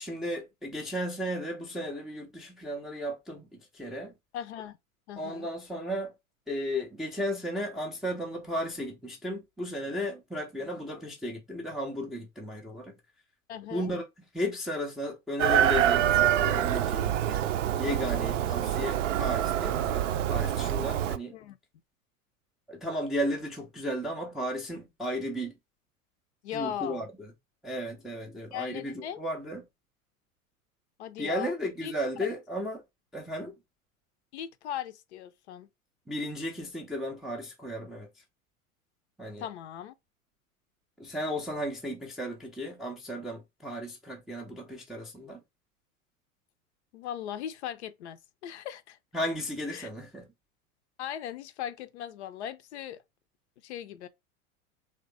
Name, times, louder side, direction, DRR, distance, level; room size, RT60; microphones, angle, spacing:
voice 1, 0.0-4.1 5.2-6.1 6.5-13.0 13.7-14.0 14.3-21.3 22.7-25.5 26.5-27.3 27.6-29.7 31.2-32.8 33.1-33.6 36.1-38.1 39.2-39.5 41.0-45.4 49.1-50.3, equal, ahead, 0.4 m, -34 dB
voice 2, 4.3-4.8 5.1-5.5 13.5-13.9 21.3-21.6 26.4-27.1 28.5-29.2 31.0-31.5 31.8-31.9 34.3-35.7 39.4-39.9 46.9-49.0 49.7-49.9 51.0-53.0 53.6-54.1, left 10 dB, 50° left, 0.5 m, -38 dB
Chicken rooster, 15.4-21.2, right 11 dB, 60° right, 0.5 m, -26 dB
3.1 x 2.8 x 3.3 m
figure-of-eight pair, 90°, 43 cm